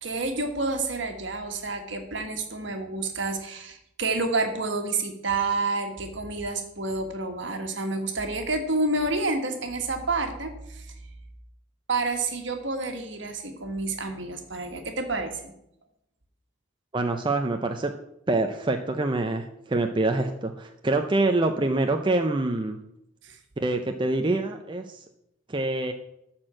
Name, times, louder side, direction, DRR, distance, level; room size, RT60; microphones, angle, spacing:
voice 1, 0.0-10.9 11.9-15.5 23.2-23.4, right 3 dB, 65° right, 5 dB, 1.6 m, -29 dB
voice 2, 16.9-17.9 18.3-22.8 23.6-25.0 25.5-25.9, right 2 dB, 25° right, 5 dB, 0.5 m, -25 dB
12.5 x 4.4 x 7.4 m, 0.81 s
head